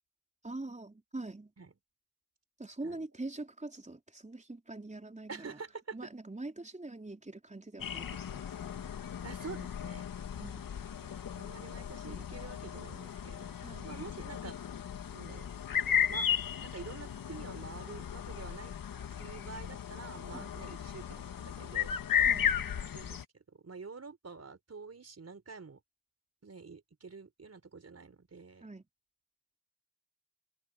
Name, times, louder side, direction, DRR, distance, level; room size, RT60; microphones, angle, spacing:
voice 1, 0.4-1.5 2.6-5.6 5.9-8.7 10.4-10.6 13.6-13.9 20.3-20.5 22.3-22.5 28.6-28.8, right 2 dB, 20° right, 4.3 m, -44 dB
voice 2, 5.3-6.0 9.2-10.1 11.0-13.6 13.8-14.6 15.1-15.5 16.1-16.3 16.6-18.7 19.1-22.0 22.7-25.8 26.4-28.7, right 4 dB, 50° right, 5.2 m, -47 dB
sound 1, 7.8-23.2, left 8 dB, 80° left, 2.0 m, -35 dB
open air
supercardioid pair, 40°, 33 cm